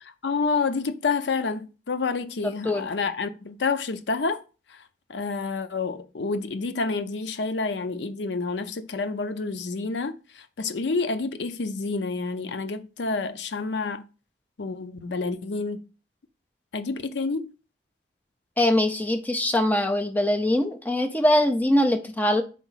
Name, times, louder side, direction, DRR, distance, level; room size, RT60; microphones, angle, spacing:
voice 1, 0.2-4.4 5.1-10.2 10.6-14.1 14.6-15.8 16.7-17.5, left 4 dB, 80° left, 0.6 m, -28 dB
voice 2, 2.4-2.9 18.6-22.4, left 1 dB, 10° left, 0.7 m, -22 dB
4.8 x 4.0 x 5.6 m
head